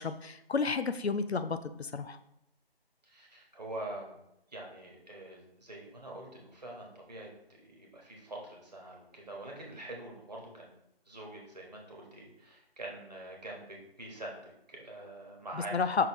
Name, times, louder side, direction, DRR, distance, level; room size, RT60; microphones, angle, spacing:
voice 1, 0.0-2.2 15.7-16.1, left 4 dB, 85° left, 10 dB, 0.5 m, -31 dB
voice 2, 3.0-4.2 4.5-10.7 11.1-16.1, right 1 dB, 40° right, -1 dB, 1.5 m, -45 dB
5.6 x 5.4 x 3.1 m, 0.81 s
figure-of-eight pair, 160°, 31 cm